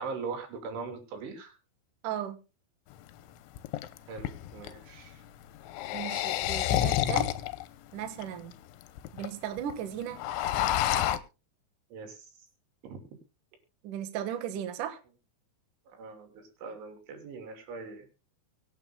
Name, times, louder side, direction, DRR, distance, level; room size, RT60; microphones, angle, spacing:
voice 1, 0.0-1.5 4.1-5.2 11.9-12.3 12.8-13.0 15.9-18.1, right 4 dB, 80° right, 5 dB, 5.4 m, -41 dB
voice 2, 2.0-2.4 5.9-7.3 7.9-8.5 9.1-10.2 13.8-15.0, right 10 dB, 60° right, 8 dB, 2.3 m, -36 dB
sound 1, 2.9-3.0 3.6-4.8 5.6-7.6 8.2-8.3 8.5-8.6 8.8-9.3 9.6-9.7 10.0-11.2, left 12 dB, 80° left, 3.1 m, -29 dB
24.5 x 9.0 x 2.2 m, 0.30 s
omnidirectional pair, 5.4 m